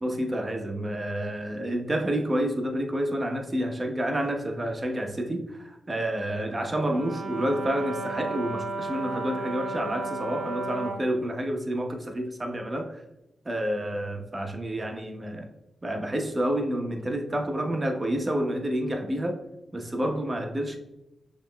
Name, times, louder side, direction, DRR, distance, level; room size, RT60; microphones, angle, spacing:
voice 1, 0.0-13.0 13.4-15.5 15.8-19.4 19.7-20.8, right 1 dB, 30° right, 3 dB, 1.0 m, -29 dB
Brass instrument, 6.7-11.1, right 3 dB, 70° right, 0.6 m, -34 dB
6.1 x 3.1 x 2.2 m, 0.90 s
supercardioid pair, 45°, 0 cm